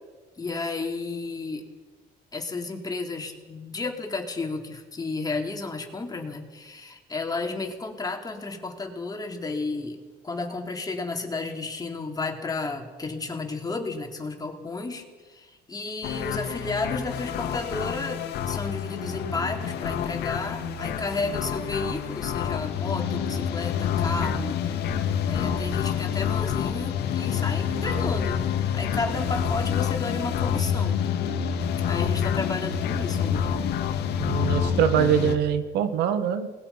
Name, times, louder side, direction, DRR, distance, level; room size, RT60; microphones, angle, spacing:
voice 1, 0.4-1.6 2.3-10.0 10.2-24.6 25.3-28.5 28.7-31.1 31.9-33.7, left 3 dB, 20° left, 2 dB, 3.8 m, -32 dB
sound 1, 16.0-35.4, left 8 dB, 75° left, 2.3 m, -27 dB
voice 2, 34.2-36.5, right 9 dB, 90° right, 10 dB, 1.8 m, -23 dB
28.0 x 20.5 x 5.8 m, 1.3 s
cardioid pair, 110°, 17 cm